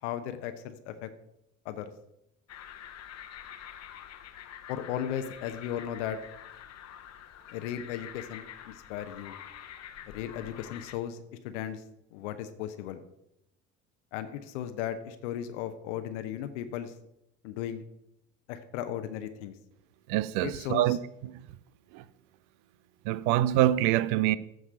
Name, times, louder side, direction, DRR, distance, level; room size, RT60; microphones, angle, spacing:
voice 1, 0.0-1.1 1.6-1.9 4.7-6.2 7.5-9.3 10.1-11.8 12.1-13.0 14.1-16.9 17.4-17.8 18.5-19.5 20.4-20.9, left 10 dB, 65° left, 0.9 m, -36 dB
sound 1, 2.5-11.0, left 10 dB, 40° left, 1.0 m, -47 dB
voice 2, 20.1-21.4 21.9-22.0 23.0-24.4, right 13 dB, 55° right, 0.6 m, -26 dB
14.0 x 4.8 x 5.5 m
figure-of-eight pair, 55°, 39 cm